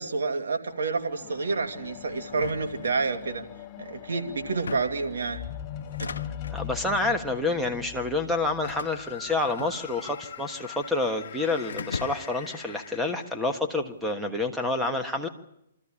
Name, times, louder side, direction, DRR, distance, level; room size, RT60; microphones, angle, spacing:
voice 1, 0.0-3.4 3.8-5.5 6.0-6.1, right 4 dB, 80° right, 5 dB, 2.4 m, -29 dB
sound 1, 0.7-10.2 11.0-11.1, left 10 dB, 25° left, 1.1 m, -41 dB
sound 2, 2.3-3.4 4.4-5.1 5.8-6.6 7.4-7.8 8.6-10.2 10.4-11.2 11.7-12.5, left 5 dB, 85° left, 0.8 m, -39 dB
voice 2, 6.5-15.3, left 2 dB, ahead, 4 dB, 1.5 m, -28 dB
sound 3, 8.6-13.8, left 9 dB, 55° left, 1.8 m, -43 dB
25.0 x 13.5 x 10.0 m, 0.82 s
hypercardioid pair, 150°, 0 cm